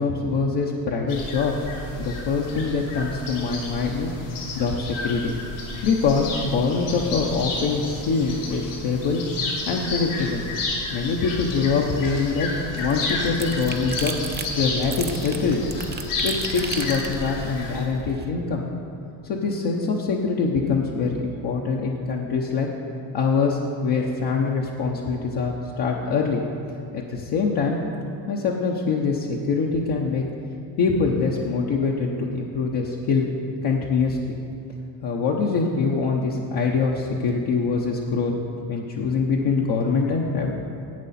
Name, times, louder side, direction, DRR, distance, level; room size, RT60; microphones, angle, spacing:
voice 1, 0.0-1.5 2.0-4.1 4.5-5.4 5.8-9.2 9.7-10.5 10.9-14.1 14.6-15.6 16.2-18.6 19.2-22.7 23.1-26.4 26.9-27.8 28.3-30.2 30.8-33.3 33.6-34.3 35.0-38.3 38.7-40.5, left 4 dB, 55° left, -2 dB, 1.0 m, -24 dB
sound 1, 1.1-17.8, left 2 dB, 85° left, 2.6 m, -32 dB
sound 2, 12.2-18.3, right 5 dB, 20° right, 0.6 m, -35 dB
11.0 x 8.0 x 4.3 m, 2.5 s
supercardioid pair, 95°, 49 cm